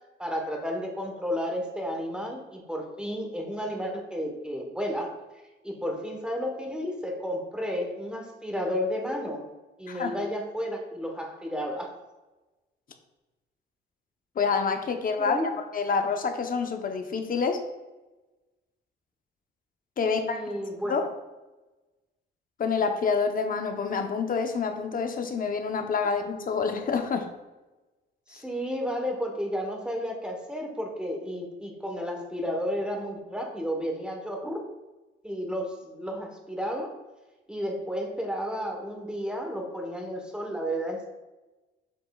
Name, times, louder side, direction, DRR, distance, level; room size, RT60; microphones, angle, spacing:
voice 1, 0.2-5.2 5.6-9.5 9.8-11.9 15.2-15.5 20.0-21.1 28.3-34.6 35.2-36.9 37.5-41.1, equal, 5° right, 1 dB, 1.1 m, -32 dB
voice 2, 14.4-17.6 20.0-20.4 20.9-21.1 22.6-27.3, left 5 dB, 45° left, 5 dB, 0.8 m, -27 dB
7.7 x 5.2 x 2.3 m, 1.1 s
cardioid pair, 90°, 20 cm